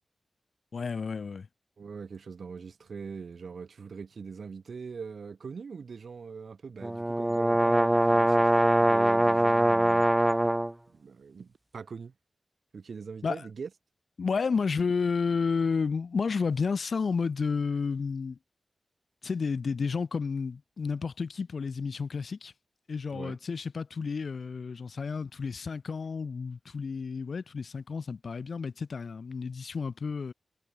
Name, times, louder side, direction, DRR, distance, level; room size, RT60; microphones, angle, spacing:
voice 1, 0.7-1.5 13.2-13.3 14.2-18.4 19.2-22.5 22.9-30.3, left 5 dB, 70° left, 1.5 m, -31 dB
voice 2, 1.8-10.1 10.9-12.1 12.7-13.7 23.1-23.4, right 5 dB, 75° right, 3.3 m, -42 dB
sound 1, 6.8-10.7, right 1 dB, 15° right, 1.1 m, -23 dB
wide cardioid pair, 80°, 0 cm